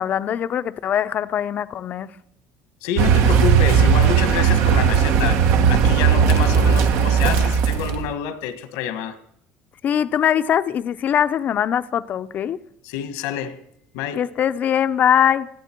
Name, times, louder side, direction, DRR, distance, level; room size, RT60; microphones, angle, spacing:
voice 1, 0.0-2.1 9.8-12.6 14.1-15.5, left 9 dB, 40° left, 0.6 m, -21 dB
voice 2, 2.8-9.2 12.8-13.6 13.9-14.2, left 9 dB, 90° left, 1.5 m, -27 dB
Car, 3.0-8.1, right 7 dB, 65° right, 1.3 m, -17 dB
20.0 x 14.5 x 4.5 m
cardioid pair, 145°, 4 cm